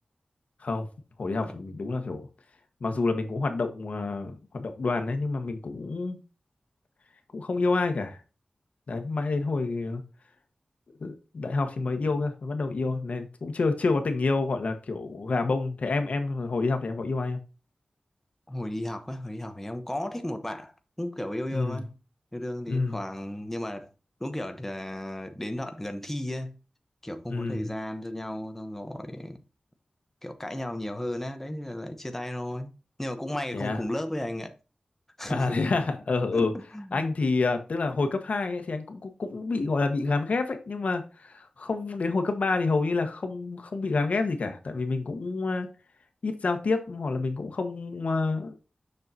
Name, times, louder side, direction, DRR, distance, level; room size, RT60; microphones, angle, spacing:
voice 1, 1.2-2.3 2.8-6.2 7.3-8.2 8.9-10.0 11.0-17.4 21.5-21.8 22.7-23.0 27.3-27.7 33.5-33.8 35.3-36.5 36.9-45.7 46.2-48.5, left 3 dB, 75° left, 1.3 m, -28 dB
voice 2, 18.5-21.9 22.3-23.9 24.2-26.6 27.0-29.4 30.2-32.7 33.0-34.5 35.2-35.7 36.3-37.1, left 1 dB, 10° left, 0.9 m, -34 dB
6.7 x 6.5 x 2.8 m
wide cardioid pair, 80°, 2 cm